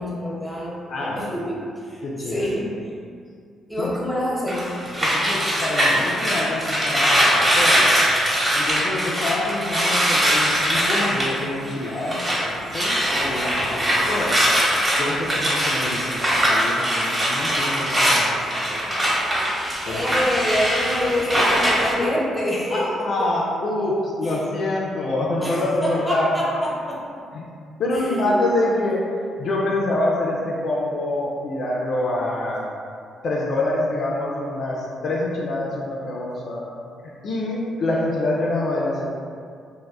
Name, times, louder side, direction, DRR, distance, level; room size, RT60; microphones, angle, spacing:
voice 1, 0.0-2.9 3.7-4.7 19.9-23.3 24.2-24.4 25.4-27.0 27.9-28.4, left 1 dB, 5° left, -7 dB, 0.9 m, -27 dB
voice 2, 0.9-1.2 2.0-2.5 3.8-4.0 5.0-8.0 8.5-14.4 15.0-18.4 18.7-19.2 19.9-20.0 22.7-26.4 27.3-27.4 27.8-29.0 29.4-32.7 33.2-36.7 37.2-39.1, left 2 dB, 60° left, -4 dB, 0.3 m, -26 dB
sound 1, 4.5-12.4 12.7-21.9, equal, 25° right, 0.7 m, -21 dB
2.7 x 2.1 x 2.2 m, 2.3 s
hypercardioid pair, 50°, 0 cm